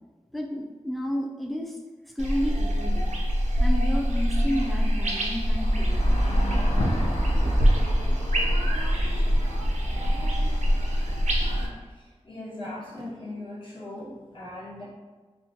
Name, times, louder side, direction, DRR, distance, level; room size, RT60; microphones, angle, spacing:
voice 1, 0.3-1.8 2.2-3.2 3.6-6.2, equal, ahead, 2 dB, 0.3 m, -31 dB
sound 1, 2.2-11.7, equal, 90° right, 0.4 m, -24 dB
sound 2, 5.5-11.7, equal, 75° left, 0.5 m, -31 dB
voice 2, 11.9-14.8, left 1 dB, 45° left, -8 dB, 1.1 m, -39 dB
2.4 x 2.2 x 2.6 m, 1.3 s
cardioid pair, 40°, 12 cm